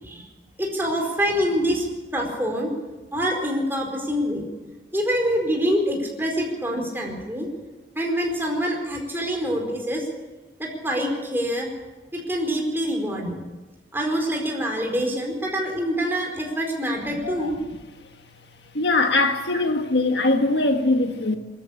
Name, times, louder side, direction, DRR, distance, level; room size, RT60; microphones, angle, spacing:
voice 1, 0.6-1.9 2.1-2.7 3.1-4.4 4.9-7.5 7.9-10.0 10.6-11.7 12.1-13.4 13.9-17.5, equal, 10° right, 4.6 m, -25 dB
voice 2, 18.7-21.4, left 2 dB, 65° left, 1.6 m, -21 dB
23.0 x 14.0 x 8.7 m
head